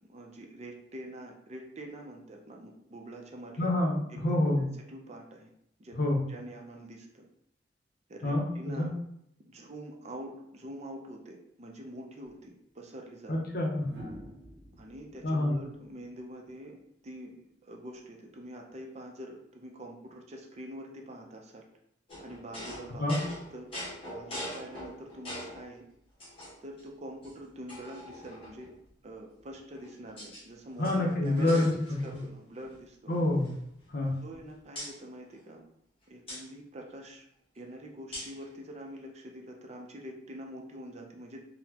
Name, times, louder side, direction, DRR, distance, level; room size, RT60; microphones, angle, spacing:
voice 1, 0.1-3.7 4.1-5.5 5.8-6.0 6.3-7.2 8.1-8.9 9.5-13.3 14.8-16.8 17.0-21.6 22.2-23.1 23.5-23.7 24.1-25.8 26.6-28.7 29.0-30.9 31.2-31.7 32.0-33.2 34.2-35.6 36.1-37.2 37.5-41.4, right 1 dB, 40° right, 1 dB, 0.5 m, -45 dB
voice 2, 3.6-4.6 5.9-6.2 8.2-8.9 13.3-13.8 15.2-15.5 23.0-23.2 30.8-31.7 33.1-33.5 33.9-34.1, left 1 dB, 60° left, 0 dB, 0.7 m, -27 dB
sound 1, 12.4-12.5 13.8-16.9 18.4-18.7, equal, 75° right, 0.8 m, -48 dB
sound 2, 22.1-25.7 26.2-26.8 27.2-27.3 27.7-28.7 29.5-30.4 30.7-32.3 32.5-32.8 33.1-34.4 34.7-35.0 36.3-36.4 38.1-38.4, equal, 30° left, 1.2 m, -43 dB
4.0 x 2.1 x 2.8 m, 0.73 s
head